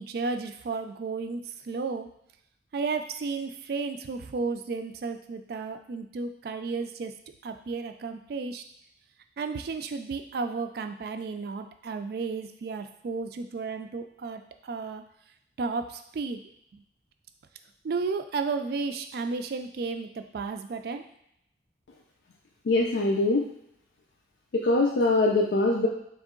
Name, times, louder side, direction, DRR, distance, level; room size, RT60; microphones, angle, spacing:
voice 1, 0.0-2.1 2.7-7.1 7.4-8.6 9.4-15.0 15.6-16.4 16.7-16.8 17.8-21.1, right 4 dB, 60° right, 8 dB, 0.3 m, -33 dB
voice 2, 22.7-23.5 24.5-25.9, left 2 dB, 85° left, -1 dB, 0.5 m, -23 dB
3.6 x 3.1 x 3.7 m, 0.74 s
head